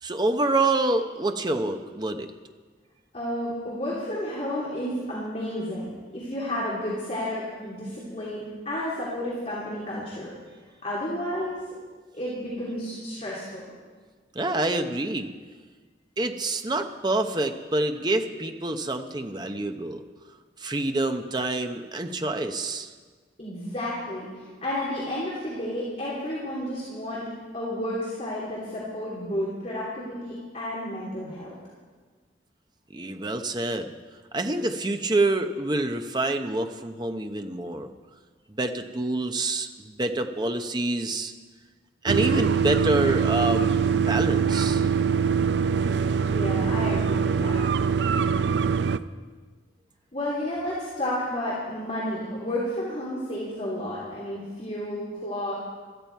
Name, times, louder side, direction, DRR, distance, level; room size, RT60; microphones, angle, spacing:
voice 1, 0.0-2.3 14.3-15.3 16.2-20.0 20.6-22.9 32.9-33.9 34.3-37.9 38.5-41.3 42.0-44.9, right 2 dB, 25° right, 6 dB, 0.8 m, -27 dB
voice 2, 3.1-10.3 10.8-11.6 12.1-13.7 23.4-27.2 27.5-31.5 46.3-47.7 50.1-55.5, left 1 dB, 35° left, -8 dB, 3.0 m, -31 dB
sound 1, 42.1-49.0, right 6 dB, 70° right, 0.4 m, -23 dB
16.5 x 13.5 x 4.6 m, 1.5 s
head